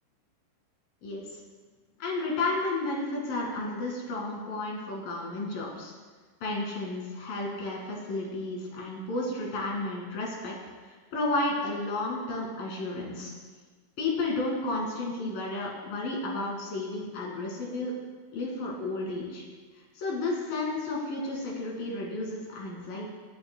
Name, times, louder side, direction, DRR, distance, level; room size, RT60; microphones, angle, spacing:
voice 1, 1.0-1.4 2.0-5.9 6.4-10.5 10.9-13.3 14.0-17.9 18.3-19.4 20.0-23.1, left 2 dB, 60° left, -2 dB, 3.8 m, -32 dB
25.0 x 8.6 x 2.3 m, 1.4 s
omnidirectional pair, 4.8 m